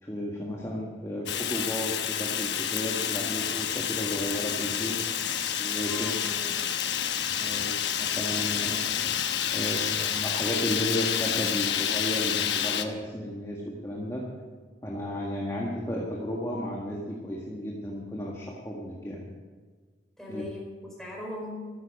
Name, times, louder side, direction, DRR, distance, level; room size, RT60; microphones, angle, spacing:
voice 1, 0.0-5.0 5.5-6.1 7.4-9.0 9.5-14.2 14.8-19.3 20.3-20.5, equal, 20° left, -3 dB, 1.8 m, -33 dB
Fire, 1.3-12.8, left 9 dB, 85° left, 1.0 m, -29 dB
voice 2, 5.8-6.7 20.2-21.7, left 1 dB, ahead, -3 dB, 4.7 m, -40 dB
14.5 x 14.0 x 5.3 m, 1.5 s
head